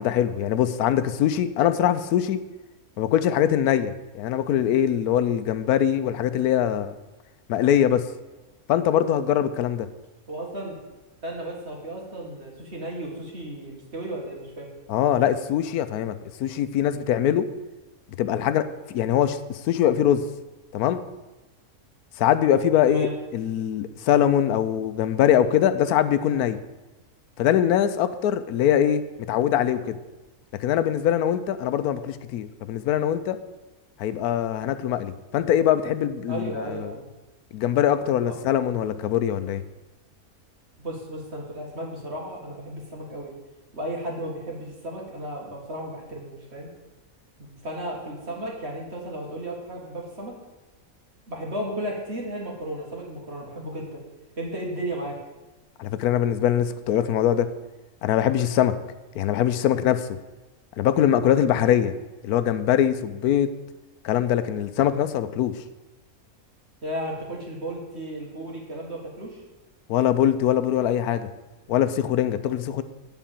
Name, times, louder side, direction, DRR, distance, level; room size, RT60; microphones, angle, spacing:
voice 1, 0.0-2.4 3.0-6.9 7.5-8.0 8.7-9.9 14.9-16.1 16.4-17.4 18.2-20.2 20.7-21.0 22.2-26.6 27.4-29.0 29.3-30.0 30.6-33.4 34.0-36.9 37.5-39.6 55.8-57.5 58.0-58.7 59.2-60.1 60.8-61.9 62.2-63.5 64.0-65.5 69.9-71.3 71.7-72.8, left 10 dB, 90° left, 12 dB, 1.1 m, -22 dB
voice 2, 10.3-10.8 11.2-14.7 22.9-23.1 36.3-37.1 38.3-38.4 40.8-43.3 43.7-46.7 47.4-50.3 51.3-54.0 54.4-55.2 66.8-69.4, right 1 dB, 45° right, -2 dB, 2.1 m, -34 dB
9.0 x 4.6 x 7.3 m, 1.1 s
omnidirectional pair, 1.6 m